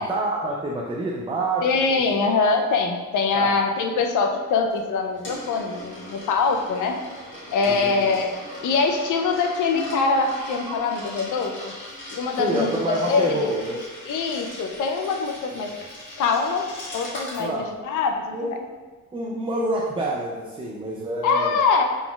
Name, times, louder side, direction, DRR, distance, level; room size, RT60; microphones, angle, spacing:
voice 1, 0.0-2.2 3.3-3.6 7.6-8.2 12.4-13.8 15.5-15.7 17.4-17.7 18.3-18.7 19.1-21.6, right 1 dB, 15° right, -2 dB, 0.4 m, -28 dB
voice 2, 1.6-7.0 7.5-8.4 8.6-11.7 12.1-13.5 14.1-15.7 16.2-18.6 21.2-21.8, left 4 dB, 70° left, 4 dB, 0.5 m, -23 dB
Coin (dropping), 4.7-17.5, left 1 dB, 40° left, 1.4 m, -40 dB
sound 1, 9.7-13.3, right 1 dB, 90° right, 0.9 m, -39 dB
3.9 x 3.8 x 2.3 m, 1.3 s
cardioid pair, 115°, 32 cm